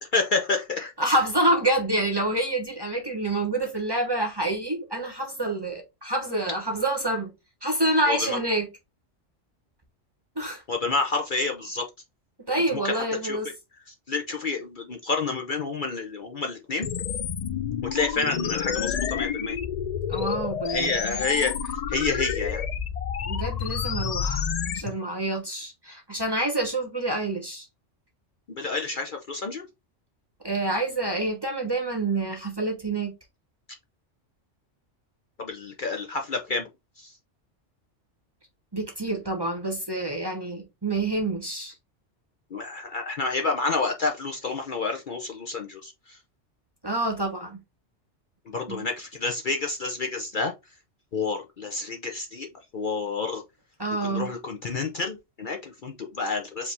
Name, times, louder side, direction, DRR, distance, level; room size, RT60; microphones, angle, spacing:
voice 1, 0.0-0.9 8.1-8.4 10.7-11.9 12.7-13.4 13.9-16.9 17.9-19.6 20.7-22.6 24.8-24.9 28.5-29.6 35.4-36.7 37.0-37.2 42.5-46.2 48.5-50.5 51.1-52.5 52.7-53.4 54.0-56.7, left 4 dB, 50° left, 0.8 m, -29 dB
voice 2, 1.0-7.3 7.6-8.7 10.4-10.6 12.5-13.5 18.2-18.4 20.1-20.9 23.2-24.4 24.7-27.7 30.4-33.1 38.7-41.7 46.8-47.6 48.7-48.8 53.8-54.3, right 2 dB, 20° right, 0.9 m, -27 dB
sound 1, 16.8-24.8, left 7 dB, 75° left, 0.3 m, -29 dB
5.0 x 2.8 x 3.3 m
omnidirectional pair, 1.3 m